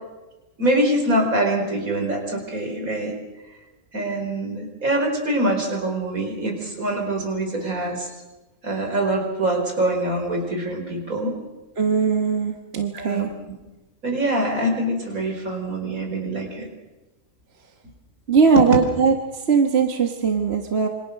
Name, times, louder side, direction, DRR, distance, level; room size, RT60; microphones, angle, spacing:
voice 1, 0.6-3.1 3.9-8.1 8.6-11.3 12.9-13.3 14.0-16.7 18.6-18.7, right 1 dB, 65° right, 2 dB, 5.1 m, -24 dB
voice 2, 11.8-13.3 18.3-20.9, right 5 dB, 45° right, 4 dB, 1.6 m, -20 dB
27.5 x 24.5 x 6.5 m, 1.1 s
omnidirectional pair, 1.6 m